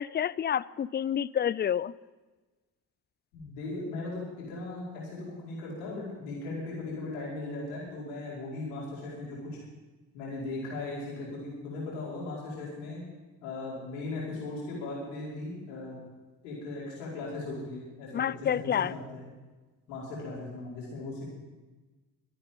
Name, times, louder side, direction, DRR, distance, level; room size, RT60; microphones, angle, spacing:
voice 1, 0.0-1.9 18.1-18.9, left 9 dB, 25° left, 20 dB, 0.4 m, -29 dB
voice 2, 3.3-9.6 10.1-13.0 13.4-15.9 16.4-19.2 19.9-21.3, left 2 dB, 85° left, -6 dB, 5.2 m, -38 dB
25.0 x 8.8 x 5.5 m, 1.2 s
hypercardioid pair, 40°, 48 cm